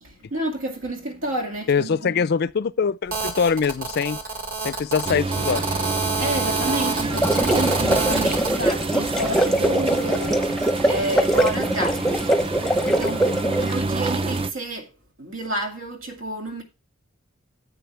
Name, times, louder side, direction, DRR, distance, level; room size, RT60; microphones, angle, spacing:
voice 1, 0.0-2.3 6.2-12.3 12.8-14.9 15.2-16.6, right 1 dB, 75° right, 2.2 m, -30 dB
voice 2, 1.7-4.2 4.6-5.7, left 6 dB, 50° left, 0.4 m, -23 dB
Telephone, 3.1-8.5, right 4 dB, 45° right, 1.9 m, -28 dB
sound 1, 5.0-14.5, right 3 dB, 25° right, 0.5 m, -28 dB
sound 2, 7.0-13.8, right 1 dB, ahead, 0.8 m, -22 dB
10.5 x 8.6 x 3.3 m
head